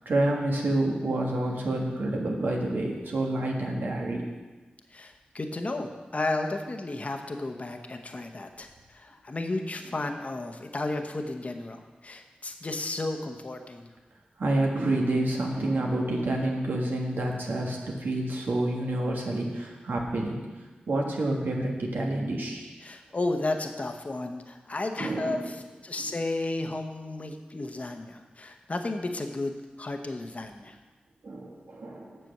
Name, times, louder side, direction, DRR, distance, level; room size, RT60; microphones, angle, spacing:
voice 1, 0.0-4.2 14.4-20.4 20.9-22.7 25.0-25.5 31.2-32.2, right 1 dB, 85° right, 0 dB, 1.6 m, -28 dB
voice 2, 4.9-13.9 22.8-30.8, left 2 dB, 45° left, 5 dB, 0.9 m, -33 dB
7.7 x 6.8 x 6.6 m, 1.3 s
cardioid pair, 55°, 3 cm